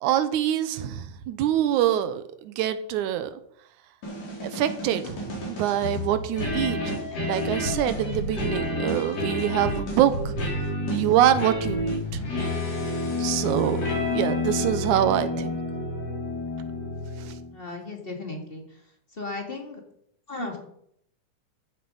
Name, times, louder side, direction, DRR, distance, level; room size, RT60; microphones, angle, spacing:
voice 1, 0.0-3.4 4.4-10.4 10.9-12.2 13.2-13.8 14.1-15.5 17.2-17.3, right 11 dB, 75° right, 12 dB, 2.1 m, -25 dB
sound 1, 4.0-17.5, left 2 dB, 50° left, 4.9 m, -30 dB
voice 2, 17.5-18.6 19.2-19.8 20.3-20.6, left 2 dB, 20° left, 2 dB, 1.7 m, -35 dB
14.0 x 7.3 x 5.5 m, 0.71 s
omnidirectional pair, 3.7 m